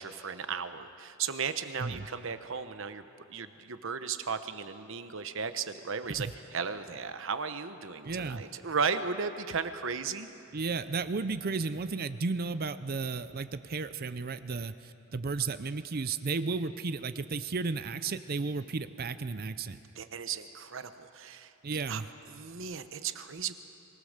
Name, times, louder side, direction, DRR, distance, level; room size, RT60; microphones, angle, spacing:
voice 1, 0.0-3.0 3.3-10.3 19.9-21.5 21.9-22.0 22.3-23.5, right 6 dB, 60° right, 10 dB, 1.0 m, -35 dB
voice 2, 8.0-8.4 10.5-19.8 21.6-22.1, right 4 dB, 45° right, 12 dB, 0.6 m, -33 dB
24.0 x 19.5 x 6.6 m, 2.7 s
head